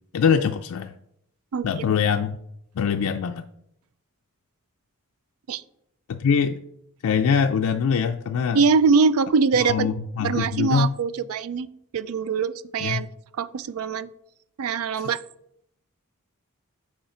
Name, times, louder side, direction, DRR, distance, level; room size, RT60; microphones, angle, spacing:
voice 1, 0.1-0.9 1.6-2.4 2.8-3.4 6.1-6.6 7.0-8.6 9.7-10.9 12.8-13.0 15.0-15.1, left 6 dB, 80° left, 5 dB, 0.4 m, -23 dB
voice 2, 1.5-1.8 5.5-5.6 8.5-9.9 10.2-11.7 11.9-13.1 13.3-14.1 14.6-15.2, right 5 dB, 80° right, 17 dB, 0.4 m, -23 dB
8.0 x 4.9 x 4.3 m, 0.75 s
head